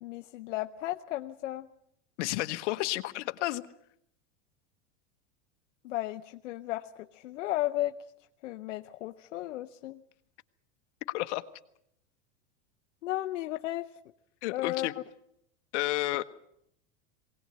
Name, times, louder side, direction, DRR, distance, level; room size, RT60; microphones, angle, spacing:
voice 1, 0.0-1.7 5.8-8.0 8.4-10.0 13.0-13.9 14.5-14.9, left 15 dB, 90° left, 6 dB, 0.8 m, -34 dB
voice 2, 2.2-3.7 11.1-11.4 14.4-14.9 15.7-16.2, left 18 dB, 70° left, 10 dB, 1.2 m, -31 dB
20.0 x 18.5 x 7.9 m, 0.75 s
supercardioid pair, 120°, 36 cm